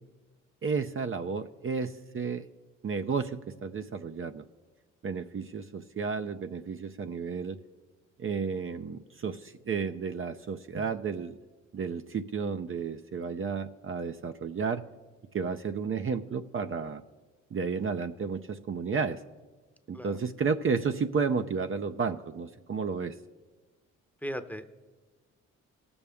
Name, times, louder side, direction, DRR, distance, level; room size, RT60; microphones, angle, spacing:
voice 1, 0.6-2.5 2.8-4.4 5.0-7.6 8.2-11.4 11.7-14.8 15.3-17.0 17.5-19.2 19.9-23.2, right 5 dB, 40° right, 7 dB, 0.7 m, -32 dB
voice 2, 24.2-24.7, equal, 5° left, 9 dB, 0.9 m, -37 dB
19.0 x 7.1 x 3.5 m, 1.3 s
supercardioid pair, 50°, 33 cm